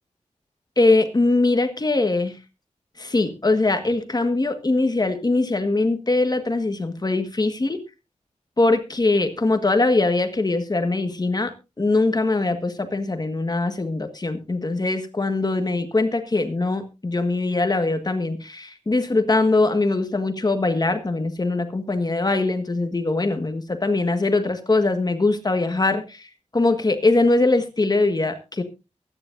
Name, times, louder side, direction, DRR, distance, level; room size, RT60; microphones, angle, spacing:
voice 1, 0.8-2.4 3.0-7.8 8.6-11.5 11.8-26.3 26.5-28.6, left 2 dB, 35° left, 8 dB, 1.5 m, -22 dB
22.5 x 9.9 x 2.6 m, 0.27 s
wide cardioid pair, 95°, 12 cm